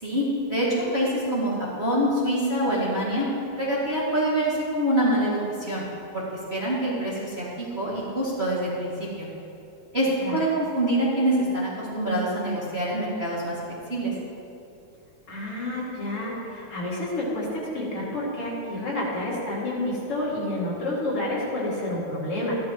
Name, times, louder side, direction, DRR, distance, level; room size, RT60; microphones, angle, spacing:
voice 1, 0.0-3.3 3.6-5.4 5.7-5.8 6.1-8.9 9.2-9.3 9.9-13.6 13.9-14.1, right 1 dB, 25° right, -8 dB, 2.0 m, -25 dB
voice 2, 15.3-22.6, left 1 dB, 50° left, -6 dB, 3.1 m, -29 dB
15.5 x 12.0 x 3.0 m, 2.7 s
omnidirectional pair, 3.4 m